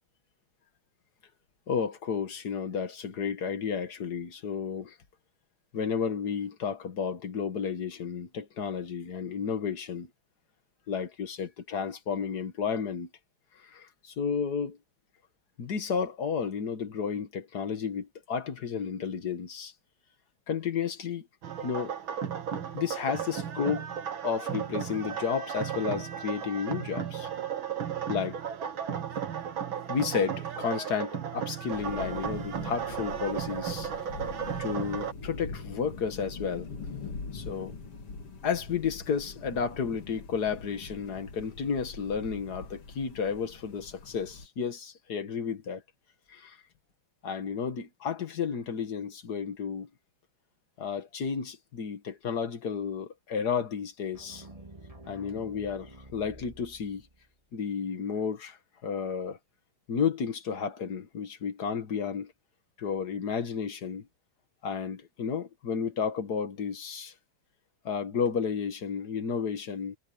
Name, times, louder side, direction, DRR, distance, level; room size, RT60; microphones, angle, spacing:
voice 1, 1.7-5.0 5.7-10.1 10.9-13.1 13.5-14.8 15.6-19.7 20.5-21.3 21.6-21.9 22.7-23.9 24.2-27.3 28.1-28.4 29.9-33.9 34.6-36.7 37.3-37.7 38.4-45.8 46.3-46.6 47.2-49.9 50.8-54.5 55.1-57.0 57.5-59.4 59.9-62.3 62.8-64.1 64.6-67.1 67.8-70.0, left 6 dB, 50° left, 2.1 m, -32 dB
sound 1, 21.4-35.1, right 8 dB, 65° right, 2.5 m, -35 dB
sound 2, 31.7-44.5, left 4 dB, 90° left, 3.7 m, -43 dB
sound 3, 54.1-57.3, right 2 dB, 15° right, 2.3 m, -49 dB
omnidirectional pair, 2.4 m